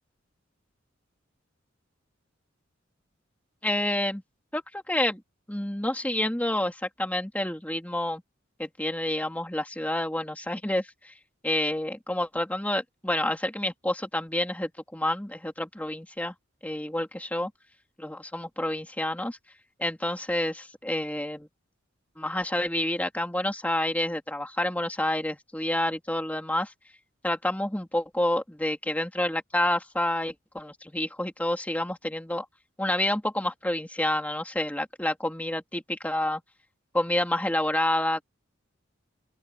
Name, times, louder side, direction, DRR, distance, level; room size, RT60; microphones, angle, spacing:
voice 1, 3.6-4.2 4.5-5.2 5.5-8.2 8.6-11.1 11.4-16.3 16.6-17.5 18.0-19.4 19.8-21.5 22.2-26.7 27.2-32.5 32.8-36.4 36.9-38.2, left 1 dB, 10° left, 2.2 m, -28 dB
open air
head